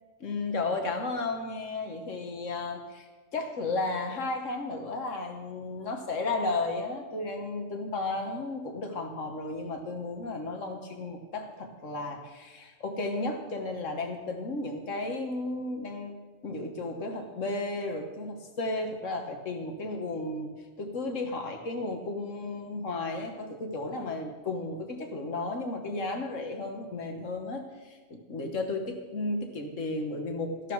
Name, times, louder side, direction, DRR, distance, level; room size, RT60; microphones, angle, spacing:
voice 1, 0.2-16.2 16.4-20.5 20.8-30.7, left 2 dB, 75° left, 4 dB, 1.8 m, -34 dB
13.5 x 11.5 x 4.7 m, 1.3 s
omnidirectional pair, 1.3 m